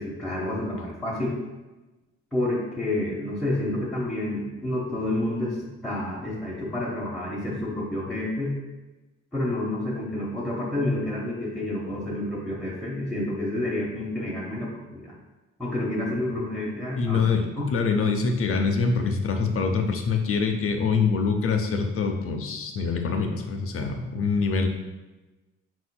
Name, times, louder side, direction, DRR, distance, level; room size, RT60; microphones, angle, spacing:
voice 1, 0.0-1.4 2.3-8.5 9.3-15.1 15.6-17.2 17.6-17.7, left 1 dB, ahead, -6 dB, 0.8 m, -29 dB
voice 2, 17.0-24.7, left 5 dB, 45° left, 4 dB, 0.6 m, -25 dB
4.3 x 4.2 x 2.2 m, 1.1 s
cardioid pair, 90°, 30 cm